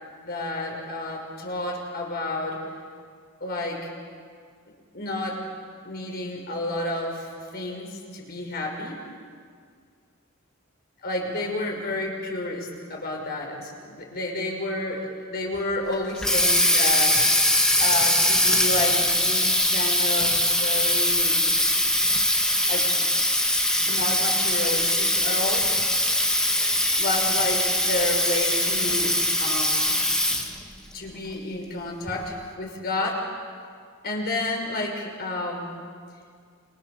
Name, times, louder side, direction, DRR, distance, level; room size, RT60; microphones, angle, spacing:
voice 1, 0.2-2.6 3.4-3.9 4.9-5.4 5.8-9.0 11.0-17.3 17.8-21.6 22.7-23.1 23.8-25.7 26.5-30.0 30.9-33.2 34.0-35.7, left 2 dB, 50° left, 1 dB, 5.9 m, -30 dB
Water tap faucet, 15.9-30.6, left 1 dB, 5° left, 2.2 m, -22 dB
29.0 x 27.5 x 6.9 m, 2.1 s
head